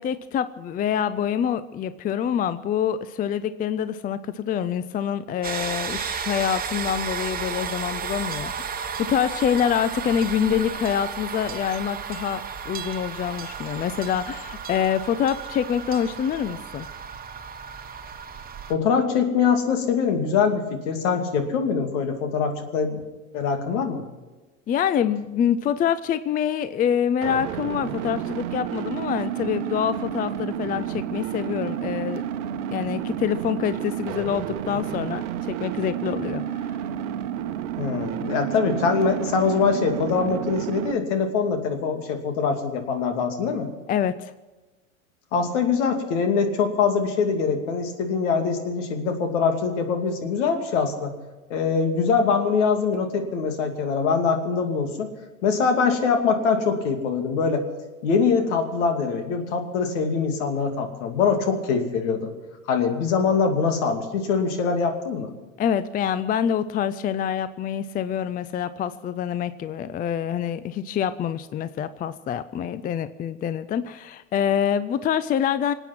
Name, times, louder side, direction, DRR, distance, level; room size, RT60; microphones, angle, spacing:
voice 1, 0.0-16.9 24.7-32.2 32.7-36.4 43.9-44.3 65.6-75.7, left 9 dB, 20° left, 15 dB, 0.5 m, -26 dB
sound 1, 5.4-18.7, right 7 dB, 20° right, 1.4 m, -33 dB
voice 2, 18.7-23.0 23.3-24.0 37.8-43.7 45.3-51.1 51.5-55.1 55.4-57.6 58.0-62.3 62.7-65.3, left 5 dB, 65° left, 5 dB, 2.7 m, -23 dB
sound 2, 27.2-40.9, right 10 dB, 65° right, 1.0 m, -30 dB
26.5 x 9.0 x 6.1 m, 1.2 s
hypercardioid pair, 85°, 39 cm